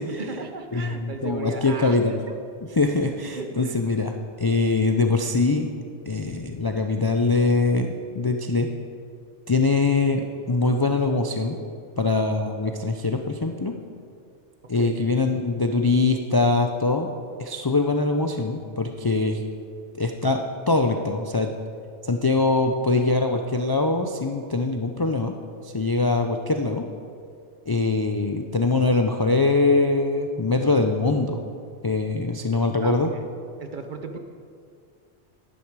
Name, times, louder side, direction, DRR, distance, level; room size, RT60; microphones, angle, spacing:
voice 1, 0.2-2.0 2.3-2.4 3.3-3.8 14.8-15.1 32.8-33.3 33.6-34.2, right 4 dB, 50° right, 6 dB, 0.8 m, -36 dB
voice 2, 0.7-2.2 2.8-5.7 6.1-7.9 8.1-8.7 9.5-11.6 12.0-13.7 14.7-17.1 17.4-19.4 20.0-21.5 22.0-25.3 25.6-26.8 27.7-31.4 31.8-33.1, left 3 dB, 40° left, 4 dB, 0.3 m, -23 dB
10.5 x 10.5 x 4.7 m, 2.3 s
omnidirectional pair, 1.2 m